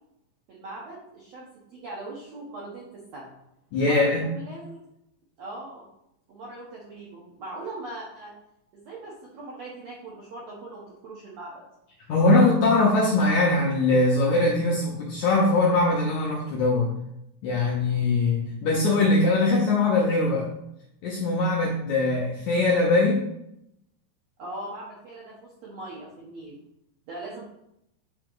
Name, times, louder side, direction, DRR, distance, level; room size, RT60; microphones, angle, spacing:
voice 1, 0.5-3.3 3.8-4.9 5.4-5.9 6.3-8.3 8.7-11.6 24.4-26.6 27.1-27.4, right 2 dB, 75° right, -4 dB, 1.5 m, -40 dB
voice 2, 3.7-4.3 12.1-16.9 17.4-20.5 21.0-23.2, left 2 dB, 80° left, -2 dB, 1.7 m, -21 dB
8.5 x 2.9 x 3.8 m, 0.81 s
omnidirectional pair, 4.3 m